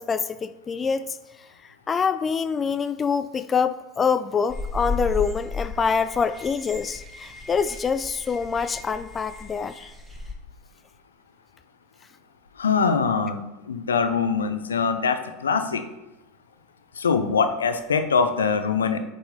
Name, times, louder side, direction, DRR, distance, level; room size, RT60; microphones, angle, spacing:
voice 1, 0.0-9.9, left 6 dB, 25° left, 11 dB, 0.3 m, -26 dB
sound 1, 4.5-10.3, left 3 dB, 5° right, 1.2 m, -34 dB
voice 2, 12.6-15.8 16.9-19.0, left 5 dB, 75° left, 8 dB, 0.6 m, -23 dB
8.4 x 4.1 x 3.9 m, 1.0 s
figure-of-eight pair, 75°, 0 cm